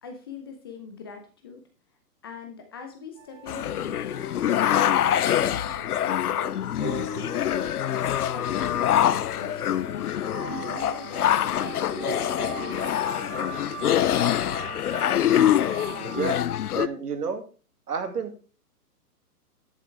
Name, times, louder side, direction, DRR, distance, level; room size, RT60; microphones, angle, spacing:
voice 1, 0.0-1.6 2.2-14.3, left 4 dB, 15° left, 5 dB, 0.5 m, -43 dB
sound 1, 3.2-16.3, right 4 dB, 20° right, 2.9 m, -40 dB
sound 2, 3.5-16.9, left 11 dB, 65° left, 0.6 m, -25 dB
voice 2, 15.1-15.4 15.9-16.4 16.7-17.4 17.9-18.4, right 6 dB, 70° right, 6 dB, 2.3 m, -31 dB
10.5 x 8.1 x 3.4 m, 0.37 s
hypercardioid pair, 140°, 48 cm